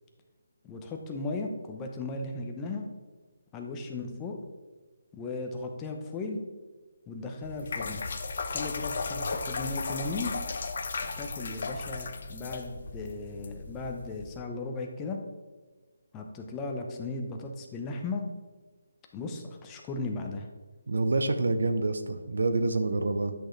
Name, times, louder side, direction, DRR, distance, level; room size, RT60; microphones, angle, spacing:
voice 1, 0.6-2.9 3.5-4.4 5.1-6.4 7.1-8.0 8.5-10.3 11.2-15.2 16.1-18.2 19.1-20.5, left 3 dB, 15° left, 2 dB, 0.8 m, -36 dB
sound 1, 7.4-14.4, left 4 dB, 50° left, 0.8 m, -35 dB
voice 2, 20.9-23.3, right 3 dB, 75° right, 9 dB, 0.8 m, -27 dB
10.0 x 6.3 x 3.2 m, 1.3 s
hypercardioid pair, 165°, 0 cm